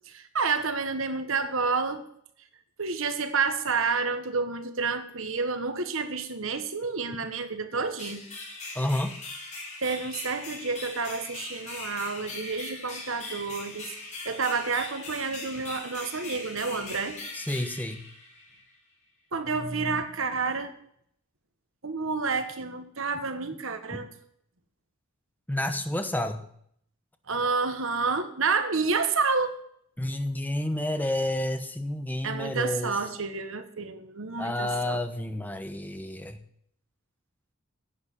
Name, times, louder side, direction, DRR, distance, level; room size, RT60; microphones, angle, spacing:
voice 1, 0.1-2.0 2.8-8.2 9.8-17.2 19.3-20.7 21.8-24.1 27.3-29.6 32.2-35.0, right 4 dB, 65° right, 9 dB, 1.2 m, -29 dB
sound 1, 8.0-18.7, left 3 dB, 35° left, 3.7 m, -40 dB
voice 2, 8.7-9.1 17.3-18.0 23.9-24.0 25.5-26.5 30.0-32.9 34.4-36.4, left 1 dB, 10° left, 7 dB, 1.0 m, -30 dB
11.0 x 8.1 x 8.3 m, 0.67 s
head